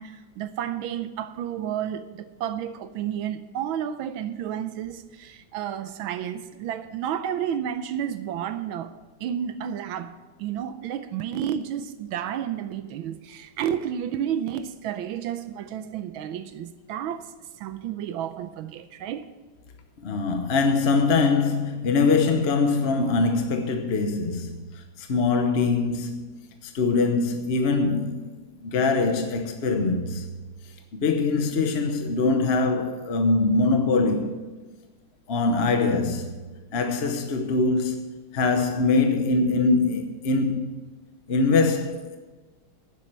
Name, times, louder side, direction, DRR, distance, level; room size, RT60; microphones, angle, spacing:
voice 1, 0.0-8.9 9.2-19.3, right 9 dB, 85° right, 1.5 m, -31 dB
voice 2, 20.0-26.3 26.6-28.3 28.6-30.3 30.9-34.4 35.3-36.3 36.7-40.7 41.3-42.2, left 3 dB, 50° left, 0.8 m, -23 dB
11.0 x 7.6 x 8.1 m
omnidirectional pair, 2.2 m